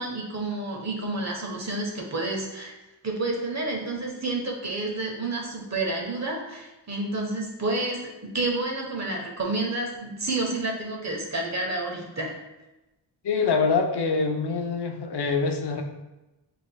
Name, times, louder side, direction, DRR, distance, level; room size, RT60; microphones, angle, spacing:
voice 1, 0.0-2.7 3.0-12.3, right 2 dB, 35° right, 0 dB, 1.1 m, -30 dB
voice 2, 13.2-15.8, left 4 dB, 60° left, 4 dB, 0.6 m, -25 dB
5.1 x 3.7 x 2.3 m, 1.0 s
cardioid pair, 60°, 45 cm